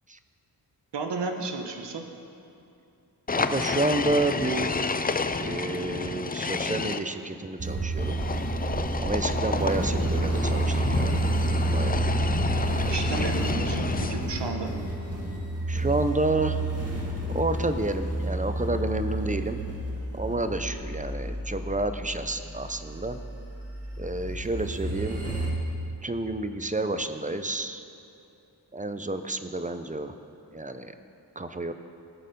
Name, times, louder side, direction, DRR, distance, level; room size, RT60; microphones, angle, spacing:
voice 1, 0.9-2.0 12.9-14.7, right 4 dB, 80° right, 4 dB, 1.1 m, -33 dB
sound 1, 3.3-7.0 8.0-14.4, left 4 dB, 25° left, 0.4 m, -30 dB
voice 2, 3.3-4.8 5.4-8.2 9.0-11.2 11.7-12.0 15.7-16.6 17.3-19.6 20.1-23.2 24.0-25.2 26.0-27.8 28.7-30.1 30.5-30.9 31.4-31.7, right 2 dB, 20° right, 9 dB, 0.6 m, -30 dB
sound 2, 7.6-25.5, right 2 dB, 35° right, 2.0 m, -30 dB
17.5 x 6.6 x 5.3 m, 2.7 s
wide cardioid pair, 70°, 41 cm